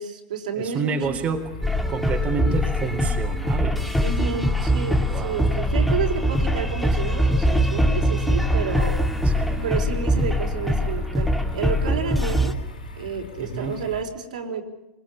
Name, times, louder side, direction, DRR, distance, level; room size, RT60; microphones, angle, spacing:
voice 1, 0.0-1.2 4.0-9.0 9.6-12.5 13.0-14.6, right 5 dB, 75° right, 3 dB, 4.5 m, -30 dB
voice 2, 0.6-1.5 1.9-4.1 5.1-5.5 9.3-9.7 13.4-13.8, right 5 dB, 30° right, 3 dB, 3.6 m, -29 dB
sound 1, 1.0-14.0, left 3 dB, 85° left, 6.1 m, -38 dB
sound 2, 1.6-12.5, equal, ahead, 2.2 m, -22 dB
27.5 x 22.0 x 7.2 m, 0.90 s
hypercardioid pair, 95°, 4 cm